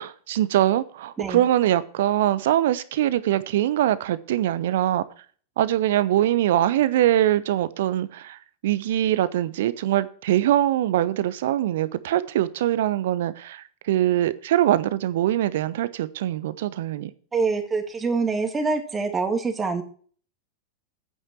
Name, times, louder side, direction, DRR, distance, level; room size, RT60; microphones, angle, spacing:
voice 1, 0.0-5.0 5.6-17.1, right 12 dB, 55° right, 0.8 m, -23 dB
voice 2, 17.3-19.8, right 4 dB, 15° right, 2.2 m, -25 dB
9.4 x 9.3 x 4.6 m
figure-of-eight pair, 90°, 0 cm